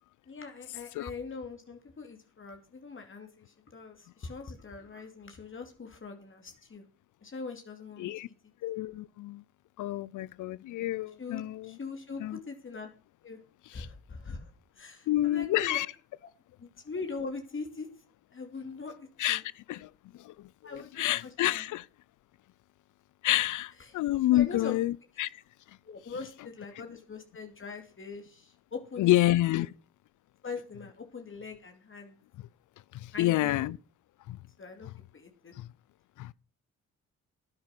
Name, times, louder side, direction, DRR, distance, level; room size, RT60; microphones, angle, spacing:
voice 1, 0.3-6.8 7.2-8.3 11.2-12.9 13.2-13.4 13.7-14.5 14.8-15.8 16.6-17.9 18.3-19.4 20.6-21.6 23.8-24.0 24.3-24.8 25.9-29.2 29.5-29.6 30.4-32.2 33.1-33.7 34.6-34.9 35.1-35.5, left 4 dB, 40° left, 2.6 m, -42 dB
voice 2, 8.6-9.4 9.8-11.8 12.2-12.4 13.8-13.9 15.1-15.9 19.2-21.9 23.2-25.4 29.0-29.7 32.9-33.8 34.3-34.4 35.6-35.7 36.2-36.3, left 15 dB, 75° left, 0.5 m, -29 dB
10.5 x 9.6 x 6.0 m
cardioid pair, 65°, 31 cm